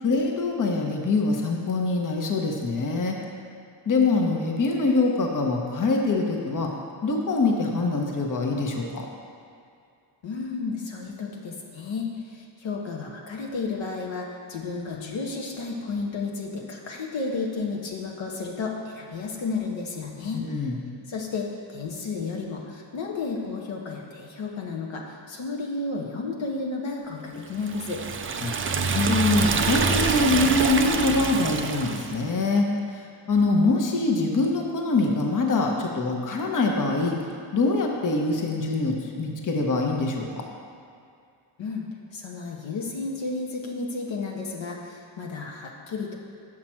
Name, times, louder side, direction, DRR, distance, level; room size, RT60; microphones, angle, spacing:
voice 1, 0.0-3.2 3.9-6.7 7.0-9.0 20.3-20.8 28.4-32.7 33.3-37.2 37.5-40.4, left 3 dB, 40° left, 1 dB, 1.0 m, -24 dB
voice 2, 10.2-20.4 21.1-28.0 41.6-41.9 42.1-46.2, left 4 dB, 65° left, -1 dB, 1.0 m, -32 dB
Liquid, 27.6-32.2, right 5 dB, 25° right, 0.4 m, -26 dB
6.2 x 5.8 x 4.4 m, 2.4 s
cardioid pair, 60°, 48 cm